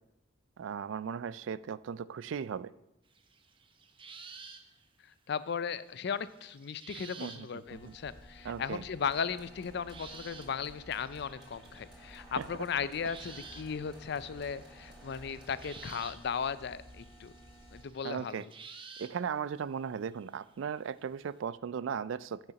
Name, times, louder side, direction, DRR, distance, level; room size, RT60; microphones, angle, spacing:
voice 1, 0.6-2.7 7.2-8.0 8.4-8.8 12.4-12.5 18.0-18.4 19.0-22.4, right 7 dB, 80° right, 18 dB, 0.3 m, -37 dB
sound 1, 3.1-4.8 5.1-5.2 5.5-7.5 7.7-8.4 9.1-11.8 12.6-12.7 13.1-13.9 14.2-19.1 19.9-20.6 21.0-21.1, right 5 dB, 25° right, 0.8 m, -51 dB
voice 2, 5.3-17.3 17.7-18.4, left 6 dB, 60° left, 16 dB, 0.4 m, -36 dB
sound 2, 7.6-17.8, equal, 30° left, 1.8 m, -54 dB
sound 3, 9.0-16.1, equal, 5° right, 2.8 m, -57 dB
8.5 x 6.7 x 5.8 m, 0.90 s
head